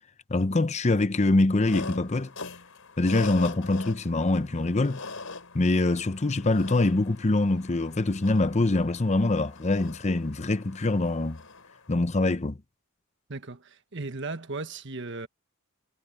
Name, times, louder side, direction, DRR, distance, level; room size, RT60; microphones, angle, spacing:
voice 1, 0.3-2.3 3.0-5.0 5.5-11.4 11.9-12.6, left 2 dB, 30° left, 0.7 m, -24 dB
sound 1, 1.6-11.9, left 3 dB, 75° left, 4.6 m, -43 dB
voice 2, 13.3-15.3, right 3 dB, 60° right, 1.4 m, -36 dB
head